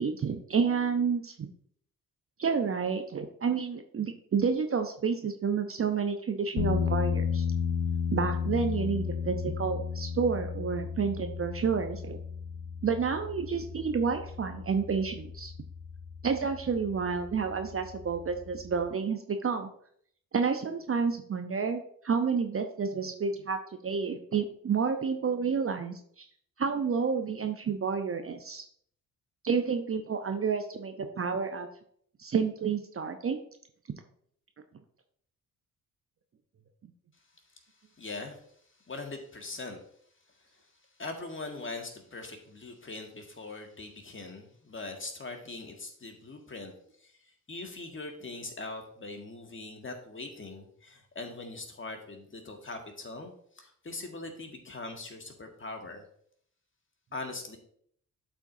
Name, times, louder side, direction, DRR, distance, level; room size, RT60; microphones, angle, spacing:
voice 1, 0.0-1.5 2.4-7.4 8.1-12.2 12.8-15.5 16.2-19.7 20.3-23.6 23.8-26.2 26.6-28.6 29.4-31.7 32.2-33.4, right 5 dB, 30° right, 6 dB, 0.8 m, -30 dB
sound 1, 6.6-18.9, left 7 dB, 70° left, 1.0 m, -34 dB
voice 2, 38.0-38.4 38.9-39.8 40.5-40.7 41.0-46.7 47.0-56.0 57.1-57.6, left 3 dB, 25° left, 4 dB, 1.8 m, -41 dB
12.0 x 4.4 x 2.7 m, 0.64 s
hypercardioid pair, 45°, 44 cm